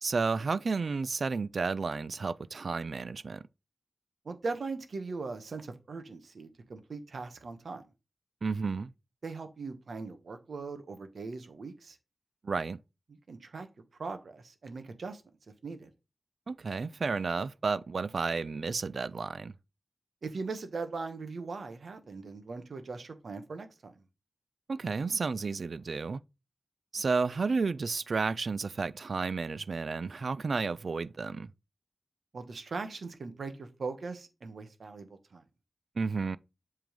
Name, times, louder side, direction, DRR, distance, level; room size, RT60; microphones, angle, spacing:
voice 1, 0.0-3.5 8.4-8.9 12.4-12.8 16.5-19.5 24.7-26.2 26.9-31.5 36.0-36.4, right 4 dB, 70° right, 0.4 m, -32 dB
voice 2, 4.2-7.8 9.2-12.0 13.3-13.7 13.9-15.2 15.6-15.9 20.2-24.0 32.3-35.4, right 4 dB, 85° right, 1.2 m, -40 dB
7.6 x 3.8 x 5.1 m
wide cardioid pair, 110°, 0 cm